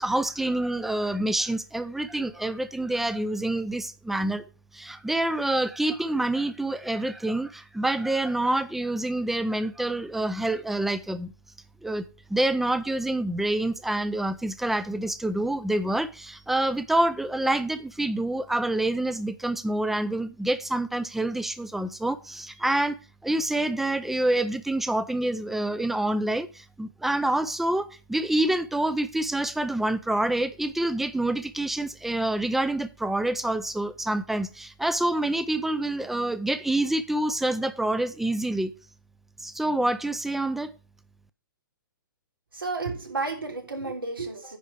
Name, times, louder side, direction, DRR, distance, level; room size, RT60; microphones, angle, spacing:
voice 1, 0.0-4.4 4.7-11.3 11.8-12.0 12.3-23.0 23.2-38.7 39.4-40.7, right 1 dB, ahead, 0.5 m, -27 dB
voice 2, 42.5-44.6, right 3 dB, 90° right, 3.1 m, -32 dB
10.0 x 4.6 x 6.7 m
hypercardioid pair, 130°, 11 cm